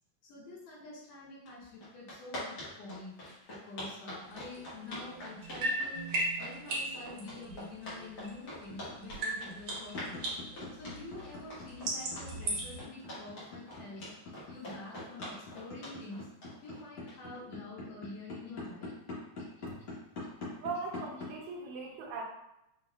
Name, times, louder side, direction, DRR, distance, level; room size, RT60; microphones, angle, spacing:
voice 1, 0.2-6.0 6.4-10.2 10.8-14.1 14.5-16.3 16.6-18.9, left 2 dB, 85° left, -6 dB, 3.2 m, -47 dB
sound 1, 1.5-1.6 1.8-17.4, left 1 dB, 45° left, 1.5 m, -44 dB
sound 2, 4.3-8.8 9.0-12.8, right 2 dB, 65° right, 2.0 m, -38 dB
sound 3, 8.7-21.3, left 3 dB, 65° left, 1.1 m, -43 dB
voice 2, 20.6-22.2, right 4 dB, 80° right, 0 dB, 2.1 m, -39 dB
5.8 x 3.0 x 2.4 m, 0.82 s
omnidirectional pair, 3.6 m